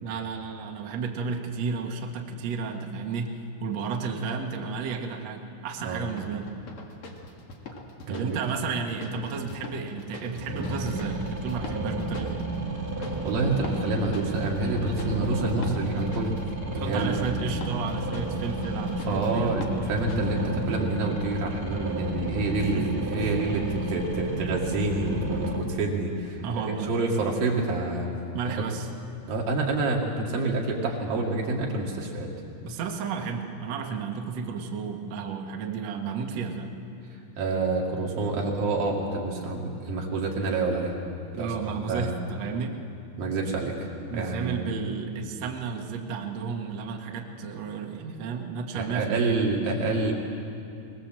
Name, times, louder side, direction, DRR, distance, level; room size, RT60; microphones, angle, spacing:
voice 1, 0.0-6.6 8.1-12.4 16.7-19.6 22.7-23.3 26.4-26.9 28.3-28.9 32.6-36.7 41.4-42.8 44.1-49.4, right 5 dB, 75° right, 2 dB, 1.5 m, -32 dB
sound 1, 6.1-20.3, left 2 dB, 50° left, 1.6 m, -43 dB
voice 2, 8.1-8.4 13.2-16.4 16.7-17.2 19.1-28.1 28.5-28.7 29.3-32.3 37.4-41.0 41.3-42.1 43.2-43.8 44.1-44.6 48.7-50.1, right 3 dB, 55° right, -1 dB, 3.7 m, -28 dB
sound 2, 10.4-25.6, right 1 dB, 40° right, 1.2 m, -31 dB
21.5 x 21.0 x 7.6 m, 2.6 s
omnidirectional pair, 5.5 m